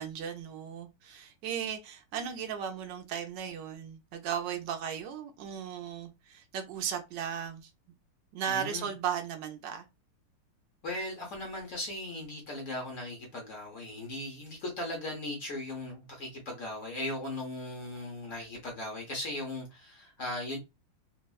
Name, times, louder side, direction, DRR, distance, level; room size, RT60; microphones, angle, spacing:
voice 1, 0.0-7.7 8.3-9.8, right 8 dB, 75° right, 1.1 m, -36 dB
voice 2, 8.5-8.9 10.8-20.6, left 1 dB, 65° left, 0.7 m, -38 dB
3.5 x 2.1 x 2.3 m
omnidirectional pair, 2.3 m